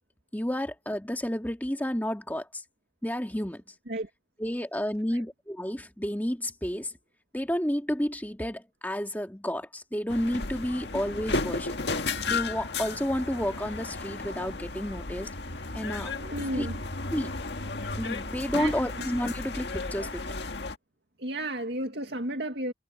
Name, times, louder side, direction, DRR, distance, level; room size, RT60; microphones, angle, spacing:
voice 1, 0.3-2.6 3.0-3.6 4.4-6.9 7.3-15.3 15.7-16.2 16.5-16.7 17.1-17.3 17.9-20.3, equal, 10° left, 2.0 m, -31 dB
sound 1, 10.1-20.8, left 3 dB, 80° left, 1.8 m, -34 dB
voice 2, 16.1-16.8 18.5-18.8 21.2-22.7, right 1 dB, 75° right, 2.1 m, -33 dB
head